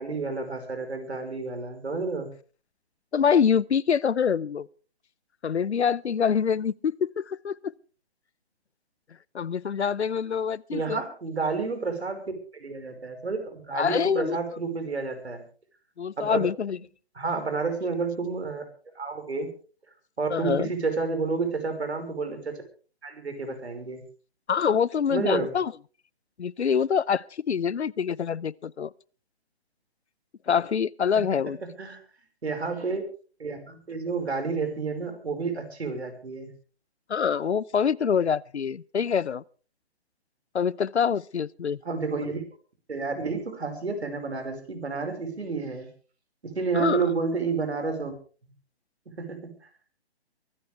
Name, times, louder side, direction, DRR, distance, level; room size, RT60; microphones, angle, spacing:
voice 1, 0.0-2.3 10.7-12.2 12.5-15.4 16.2-16.4 17.2-18.6 18.9-19.5 20.2-22.6 23.0-24.0 25.1-25.5 31.8-32.0 32.4-33.0 33.4-36.5 41.8-42.4 42.9-45.9 46.4-48.1 48.4-48.5 49.1-49.5, right 4 dB, 75° right, 5.4 m, -30 dB
voice 2, 3.1-4.7 5.4-7.7 9.3-11.0 13.7-14.4 16.0-16.8 20.3-20.7 24.5-25.7 26.4-28.9 30.5-31.6 37.1-39.4 40.5-41.8 46.7-47.1, left 7 dB, 85° left, 0.7 m, -25 dB
23.5 x 14.5 x 3.4 m
figure-of-eight pair, 145°, 32 cm